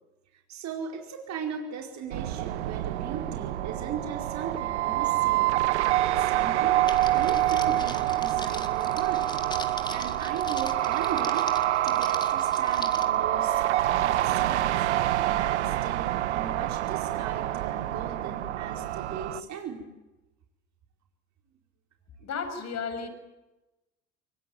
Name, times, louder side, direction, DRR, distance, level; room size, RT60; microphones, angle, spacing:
voice 1, 0.3-5.6 6.0-6.8 7.1-9.3 9.9-11.5 11.8-14.9 15.3-19.9, right 6 dB, 55° right, 3 dB, 4.7 m, -38 dB
sound 1, 2.1-19.4, right 14 dB, 85° right, 1.1 m, -26 dB
Crackle, 6.9-13.0, left 2 dB, 15° left, 4.0 m, -41 dB
voice 2, 22.2-23.1, left 5 dB, 50° left, 8 dB, 7.1 m, -33 dB
25.0 x 23.0 x 9.4 m, 1.0 s
hypercardioid pair, 65°, 33 cm